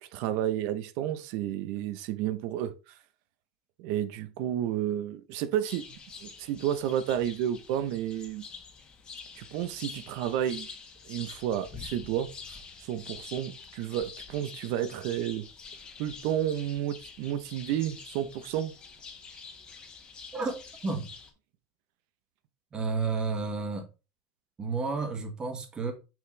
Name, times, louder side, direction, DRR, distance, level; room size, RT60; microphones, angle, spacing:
voice 1, 0.0-2.9 3.8-8.4 9.4-10.7 11.0-15.4 16.0-18.7, right 11 dB, 60° right, 0.8 m, -31 dB
sound 1, 5.7-21.3, left 5 dB, 25° left, 1.7 m, -46 dB
voice 2, 20.3-21.1 22.7-23.9 24.6-25.9, right 4 dB, 20° right, 1.6 m, -31 dB
6.1 x 5.8 x 3.3 m
supercardioid pair, 140°, 4 cm